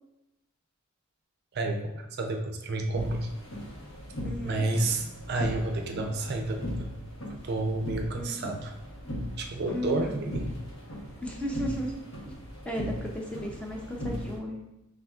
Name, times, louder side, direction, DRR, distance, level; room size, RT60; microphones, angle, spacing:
voice 1, 1.5-3.4 4.4-6.9 7.4-8.7 9.4-10.5, right 2 dB, 45° right, 3 dB, 0.4 m, -30 dB
sound 1, 2.9-14.4, equal, 70° left, 1.1 m, -38 dB
voice 2, 4.2-4.7 8.2-8.4 9.7-10.3 11.2-11.9 12.7-14.6, equal, 5° left, -1 dB, 0.5 m, -34 dB
5.5 x 3.4 x 2.4 m, 0.93 s
head